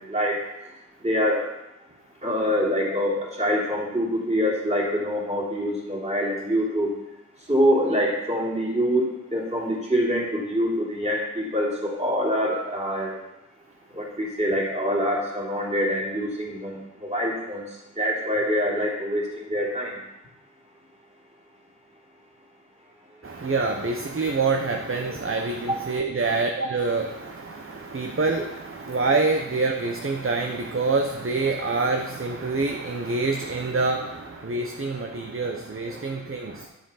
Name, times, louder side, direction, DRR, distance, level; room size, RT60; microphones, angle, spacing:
voice 1, 1.0-1.4 2.2-6.9 7.5-13.2 13.9-16.8 17.0-17.6 18.0-19.9 25.7-25.8, equal, 20° right, -5 dB, 3.2 m, -25 dB
voice 2, 23.2-36.7, right 3 dB, 40° right, 3 dB, 0.8 m, -26 dB
10.0 x 5.8 x 5.8 m, 0.95 s
wide cardioid pair, 65°, 34 cm